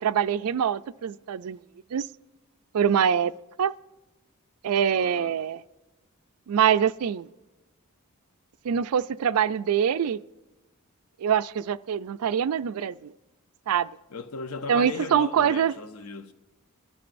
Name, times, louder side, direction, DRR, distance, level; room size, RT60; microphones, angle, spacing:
voice 1, 0.0-1.6 1.9-2.1 2.7-3.7 4.6-5.6 6.5-7.3 8.6-10.2 11.2-13.1 13.7-13.9 14.7-15.7, right 8 dB, 80° right, 0.4 m, -24 dB
voice 2, 4.9-5.4 14.1-16.3, left 4 dB, 75° left, 0.7 m, -37 dB
23.0 x 13.0 x 2.6 m
head